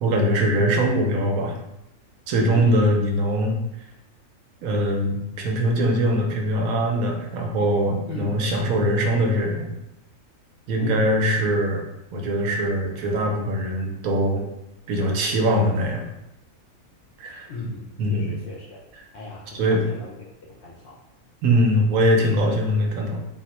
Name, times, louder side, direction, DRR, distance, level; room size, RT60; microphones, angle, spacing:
voice 1, 0.0-1.6 2.3-3.6 4.6-9.7 10.7-11.8 12.1-14.4 14.9-16.0 17.2-17.5 18.0-18.3 19.5-19.8 21.4-23.2, equal, 75° right, 1 dB, 1.1 m, -22 dB
voice 2, 2.5-3.0 8.1-8.4 8.6-8.9 10.8-11.1 17.5-18.8 19.1-21.0, left 1 dB, 65° left, -5 dB, 0.7 m, -35 dB
3.8 x 2.1 x 2.9 m, 0.86 s
omnidirectional pair, 1.5 m